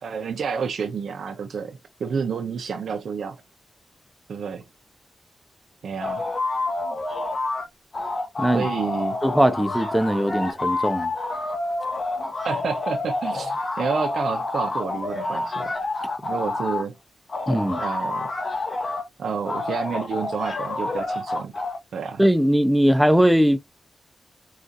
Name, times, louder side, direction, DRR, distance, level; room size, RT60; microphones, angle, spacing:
voice 1, 0.0-3.4 4.3-4.6 5.8-6.3 8.5-9.2 12.4-15.8 16.2-17.0 17.8-18.3 19.2-21.5 21.9-22.2, right 6 dB, 85° right, 0.5 m, -29 dB
sound 1, 6.0-7.7 7.9-16.8 17.3-19.1 19.5-21.8, left 2 dB, 45° left, 1.1 m, -28 dB
voice 2, 9.2-11.1 17.5-17.8 22.2-23.6, equal, 5° right, 0.4 m, -20 dB
3.9 x 2.4 x 2.4 m
wide cardioid pair, 120°, 0 cm